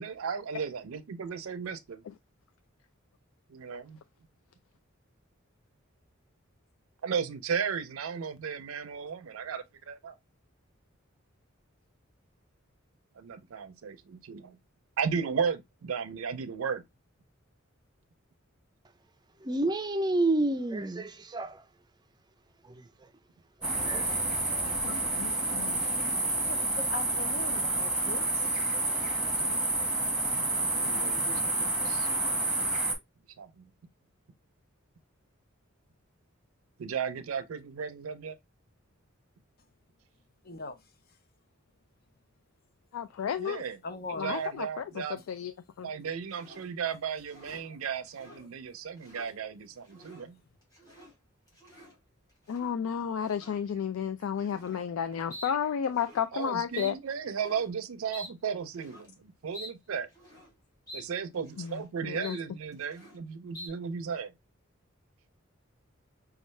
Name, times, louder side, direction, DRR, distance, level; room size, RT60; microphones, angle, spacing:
voice 1, 0.0-2.0 3.5-4.0 7.0-10.1 13.2-14.6 15.0-16.8 30.7-32.1 33.4-33.7 36.8-38.4 43.4-43.8 44.2-45.2 45.8-50.4 54.4-54.5 56.3-60.1 60.9-64.3, right 6 dB, 85° right, 0.5 m, -35 dB
voice 2, 19.4-21.6 23.8-24.1, right 2 dB, 20° right, 0.4 m, -28 dB
sound 1, 23.6-32.9, right 2 dB, 5° right, 1.2 m, -29 dB
voice 3, 24.8-25.8 42.9-43.6 44.2-45.5 45.8-45.9 52.5-56.9 61.6-61.8 62.0-62.4, left 8 dB, 80° left, 0.3 m, -32 dB
voice 4, 26.5-28.2 40.5-40.8 43.8-44.3, left 3 dB, 50° left, 0.7 m, -40 dB
sound 2, 46.3-46.7 47.2-47.6 48.1-48.5 48.9-49.3 49.8-50.3 50.6-51.1 51.5-52.0 52.4-52.8 53.3-53.6 54.4-54.8 55.3-55.5 55.8-56.2 56.8-56.9 57.3-57.7 58.1-58.3 58.7-59.1 59.5-59.7 60.1-60.5 60.9-61.0 61.3-61.8 62.2-62.4 62.7-63.2 63.5-63.7, equal, 20° left, 2.7 m, -47 dB
5.3 x 2.4 x 3.1 m
head